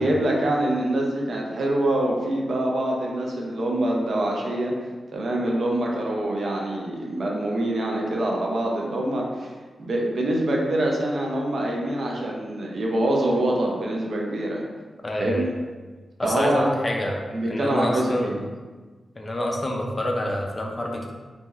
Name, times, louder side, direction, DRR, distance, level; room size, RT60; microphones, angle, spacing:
voice 1, 0.0-4.7 5.1-9.5 9.8-14.6 15.2-15.5 16.2-16.7 17.3-18.4, right 1 dB, 60° right, -1 dB, 0.5 m, -25 dB
voice 2, 15.0-15.5 16.2-17.2 17.5-18.4 19.2-21.1, left 1 dB, 25° left, 1 dB, 0.4 m, -27 dB
2.9 x 2.6 x 2.3 m, 1.4 s
wide cardioid pair, 100°, 0 cm